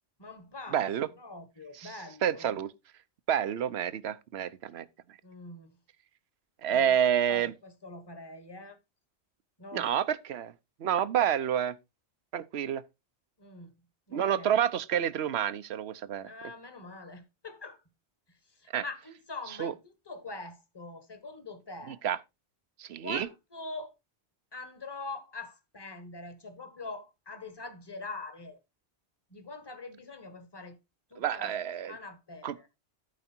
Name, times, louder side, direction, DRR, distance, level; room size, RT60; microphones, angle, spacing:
voice 1, 0.2-2.6 5.2-5.8 6.7-8.8 9.6-10.0 13.4-13.7 14.1-14.5 16.2-17.8 18.3-22.0 23.0-23.9 24.5-28.6 29.3-30.8 31.1-31.5 31.9-32.7, left 3 dB, 20° left, 1.4 m, -44 dB
voice 2, 0.7-1.1 1.8-1.9 2.2-2.7 3.3-4.9 6.6-7.5 9.7-10.5 10.8-11.8 12.3-12.8 14.1-16.3 18.7-18.8 19.6-19.7 21.9-22.2 22.8-23.3 31.2-31.9 32.4-32.5, right 9 dB, 70° right, 1.0 m, -28 dB
13.0 x 4.9 x 4.4 m
omnidirectional pair, 1.1 m